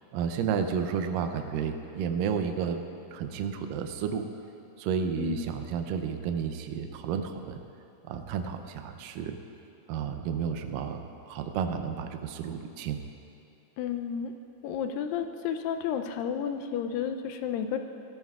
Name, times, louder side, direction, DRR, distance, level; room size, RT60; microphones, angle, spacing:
voice 1, 0.1-2.8 3.1-4.3 4.8-7.6 8.1-9.4 9.9-11.0 11.3-13.0, right 7 dB, 80° right, 6 dB, 2.1 m, -31 dB
voice 2, 5.2-5.5 13.8-14.3 14.6-17.8, left 8 dB, 80° left, 7 dB, 2.1 m, -32 dB
17.0 x 15.0 x 2.4 m, 2.7 s
omnidirectional pair, 4.4 m